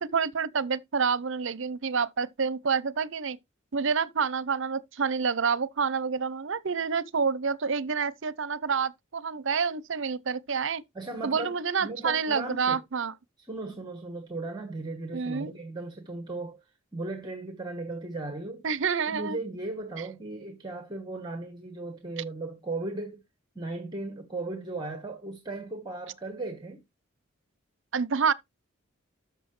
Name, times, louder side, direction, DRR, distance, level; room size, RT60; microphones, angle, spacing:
voice 1, 0.0-3.4 3.7-10.8 11.2-13.1 15.1-15.5 18.6-19.4 27.9-28.3, right 5 dB, 65° right, 0.7 m, -28 dB
voice 2, 10.9-12.8 13.4-16.7 16.9-18.7 19.1-23.2 23.5-26.8, right 2 dB, 20° right, 1.4 m, -36 dB
13.0 x 5.5 x 3.3 m
head